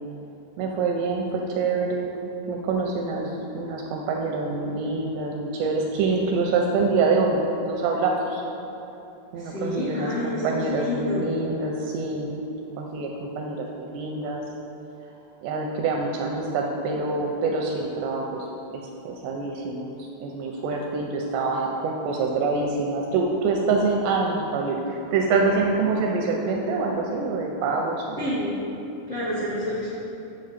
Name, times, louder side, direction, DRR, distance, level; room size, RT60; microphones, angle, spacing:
voice 1, 0.6-2.1 2.5-8.4 9.3-12.4 12.8-14.4 15.4-28.2, right 3 dB, 85° right, 0 dB, 2.5 m, -26 dB
voice 2, 9.3-11.3 28.2-28.5 29.1-29.9, left 1 dB, 65° left, -11 dB, 1.4 m, -28 dB
8.6 x 7.0 x 4.1 m, 2.9 s
omnidirectional pair, 5.4 m